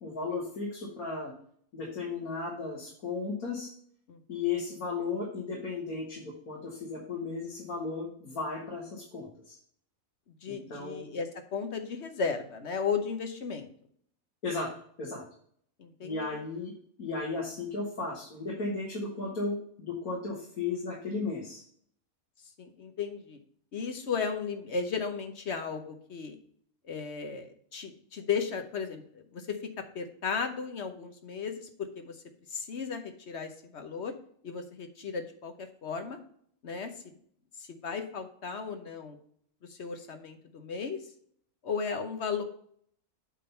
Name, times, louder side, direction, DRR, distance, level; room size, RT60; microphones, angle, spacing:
voice 1, 0.0-1.3 1.7-3.7 4.3-9.6 10.5-11.1 14.4-14.7 15.0-15.2 16.0-16.7 17.0-21.6, left 4 dB, 80° left, -3 dB, 2.1 m, -35 dB
voice 2, 4.1-4.4 10.4-13.7 15.8-16.2 22.6-23.4 23.7-26.4 26.9-29.6 29.9-32.2 32.5-34.1 34.4-36.2 36.6-36.9 37.7-39.2 39.8-41.0 41.6-42.4, left 5 dB, 55° left, 7 dB, 1.1 m, -35 dB
8.4 x 3.7 x 5.6 m, 0.62 s
omnidirectional pair, 1.5 m